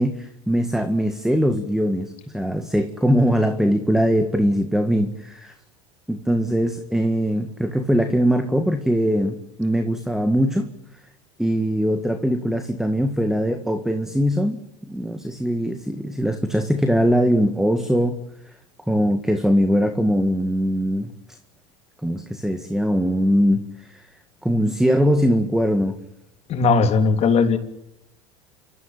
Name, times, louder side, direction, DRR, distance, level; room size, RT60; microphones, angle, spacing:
voice 1, 0.0-5.5 6.1-10.7 11.4-14.6 14.9-18.2 18.9-21.1 22.0-24.1 24.4-26.0, equal, 5° right, 8 dB, 1.9 m, -21 dB
voice 2, 26.5-27.6, left 4 dB, 40° left, 7 dB, 3.3 m, -18 dB
28.5 x 14.5 x 9.0 m, 0.83 s
supercardioid pair, 100°, 16 cm